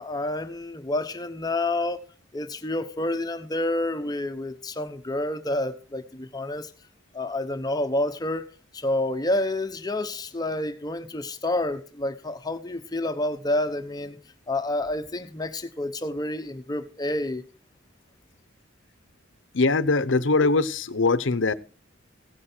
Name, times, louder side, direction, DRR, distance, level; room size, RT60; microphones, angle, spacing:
voice 1, 0.0-2.0 2.3-6.7 7.1-14.2 14.5-17.4, left 1 dB, 20° left, 0.9 m, -29 dB
voice 2, 19.5-21.5, left 3 dB, 75° left, 0.8 m, -22 dB
16.5 x 8.7 x 4.5 m
head